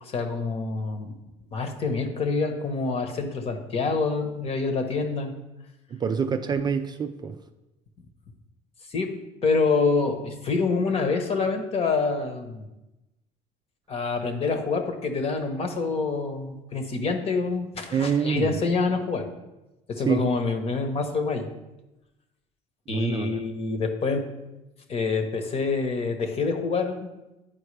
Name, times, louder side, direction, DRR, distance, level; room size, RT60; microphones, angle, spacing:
voice 1, 0.0-1.1 1.5-5.3 8.9-9.2 9.4-12.7 13.9-19.3 19.9-21.5 22.9-24.3 24.9-27.1, left 4 dB, 40° left, 5 dB, 1.1 m, -26 dB
voice 2, 5.9-7.4 17.9-18.6 20.1-20.3 22.9-23.4, right 6 dB, 25° right, 7 dB, 0.4 m, -26 dB
10.0 x 4.5 x 3.3 m, 1.0 s
supercardioid pair, 105°, 16 cm